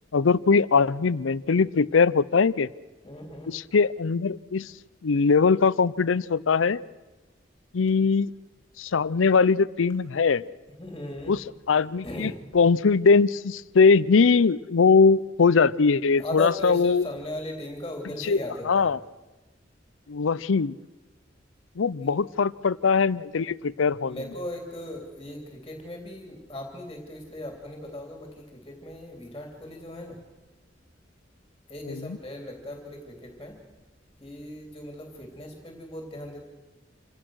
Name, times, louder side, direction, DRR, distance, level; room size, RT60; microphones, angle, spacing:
voice 1, 0.1-2.7 3.5-4.7 5.0-6.8 7.7-8.3 8.8-10.4 11.3-17.1 18.2-19.0 20.1-20.8 21.8-24.2 31.9-32.2, left 5 dB, 90° left, 19 dB, 0.6 m, -21 dB
voice 2, 3.0-3.6 10.8-11.4 12.0-12.4 16.2-18.9 22.0-22.1 24.1-30.2 31.7-33.6 34.2-36.4, left 1 dB, 20° left, 3 dB, 3.0 m, -38 dB
27.5 x 16.5 x 6.3 m, 1.2 s
head